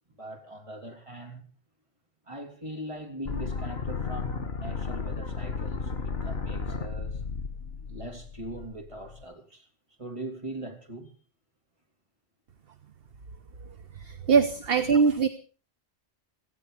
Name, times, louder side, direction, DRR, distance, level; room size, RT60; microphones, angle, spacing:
voice 1, 0.2-1.4 2.3-7.2 7.9-9.7 10.0-11.1 14.9-15.1, right 1 dB, 25° right, 3.2 m, -41 dB
sound 1, 3.3-9.2, left 5 dB, 60° left, 1.8 m, -34 dB
voice 2, 14.0-15.3, right 5 dB, 60° right, 1.1 m, -22 dB
17.5 x 15.0 x 5.0 m
omnidirectional pair, 1.2 m